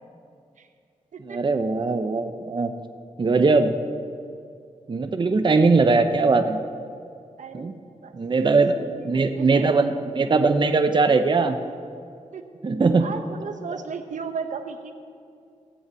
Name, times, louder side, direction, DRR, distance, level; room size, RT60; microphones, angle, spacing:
voice 1, 1.2-2.7 3.2-3.7 4.9-6.6 7.5-7.7 8.1-8.7 9.0-11.6 12.6-13.1 13.7-13.8, right 3 dB, 40° right, 7 dB, 0.7 m, -20 dB
voice 2, 7.4-8.1 8.5-9.7 12.3-12.4 13.0-14.9, right 5 dB, 80° right, 8 dB, 0.9 m, -35 dB
17.0 x 7.1 x 8.3 m, 2.4 s
wide cardioid pair, 110°, 13 cm